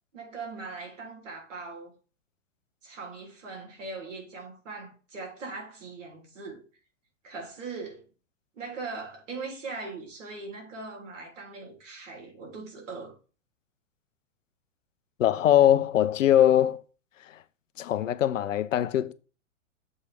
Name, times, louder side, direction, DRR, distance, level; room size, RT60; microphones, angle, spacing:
voice 1, 0.1-2.0 2.8-6.6 7.2-8.0 8.5-13.2, right 3 dB, 75° right, 3.5 m, -40 dB
voice 2, 15.2-16.8 17.3-17.4 17.8-19.1, left 11 dB, 75° left, 0.7 m, -22 dB
7.5 x 3.2 x 6.1 m
hypercardioid pair, 120°, 38 cm